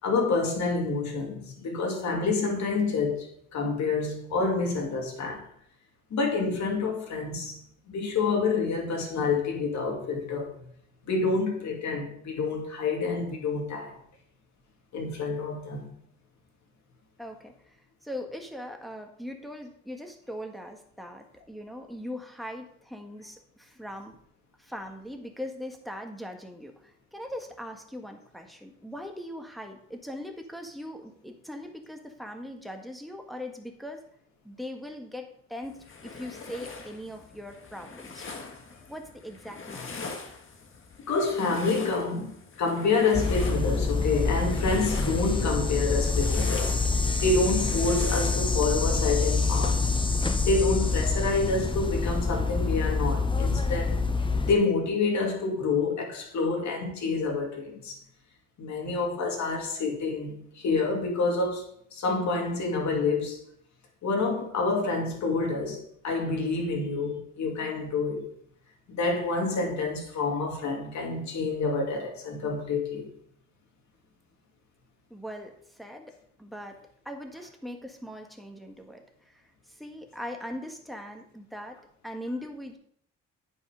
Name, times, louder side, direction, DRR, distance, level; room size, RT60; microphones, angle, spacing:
voice 1, 0.0-5.4 6.1-7.6 7.9-10.5 11.1-14.0 14.9-15.9 41.1-49.8 50.4-54.0 54.4-58.0 58.6-63.4 64.0-68.3 68.9-73.1, left 3 dB, 65° left, 2.5 m, -28 dB
voice 2, 17.2-17.8 18.0-24.2 24.6-34.0 34.4-38.2 38.9-40.1 75.1-76.8 77.0-81.8 82.0-82.8, left 1 dB, ahead, 1.6 m, -40 dB
sound 1, 35.6-48.9, left 4 dB, 40° left, 1.7 m, -42 dB
sound 2, 43.1-54.5, left 3 dB, 15° left, 0.9 m, -26 dB
9.1 x 5.8 x 5.1 m
cardioid pair, 90°, 30 cm